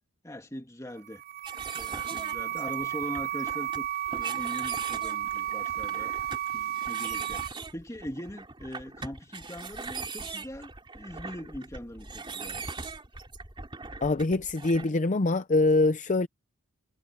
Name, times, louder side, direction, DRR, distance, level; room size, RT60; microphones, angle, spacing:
voice 1, 0.2-1.2 1.7-6.1 6.5-12.6, equal, 15° left, 2.6 m, -41 dB
sound 1, 1.0-7.5, right 11 dB, 45° right, 0.4 m, -33 dB
sound 2, 1.4-14.9, right 4 dB, 25° right, 2.9 m, -41 dB
voice 2, 14.0-16.3, left 2 dB, 35° left, 0.6 m, -24 dB
head